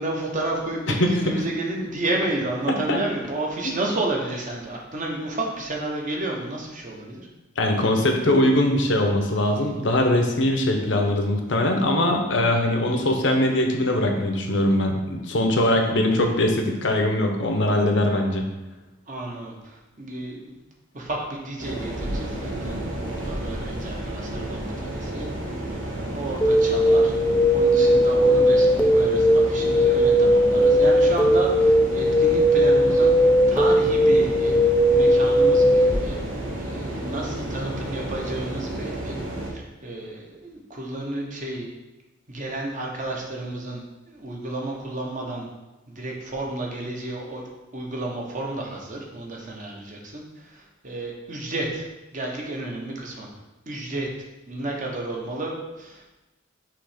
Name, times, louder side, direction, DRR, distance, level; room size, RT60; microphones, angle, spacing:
voice 1, 0.0-7.3 15.9-16.0 19.1-20.6 20.9-25.3 25.9-27.1 27.5-34.5 34.9-41.7 42.3-43.8 44.1-45.5 45.9-47.5 47.7-51.8 52.1-53.3 53.7-54.1 54.5-56.1, right 2 dB, 40° right, -1 dB, 1.1 m, -31 dB
voice 2, 1.0-1.3 2.7-3.0 7.6-18.5, left 1 dB, 65° left, 3 dB, 0.8 m, -21 dB
sound 1, 21.6-39.5, right 1 dB, 80° right, 1.3 m, -31 dB
sound 2, 26.4-36.0, equal, 5° left, 0.4 m, -18 dB
5.9 x 3.1 x 5.0 m, 1.1 s
head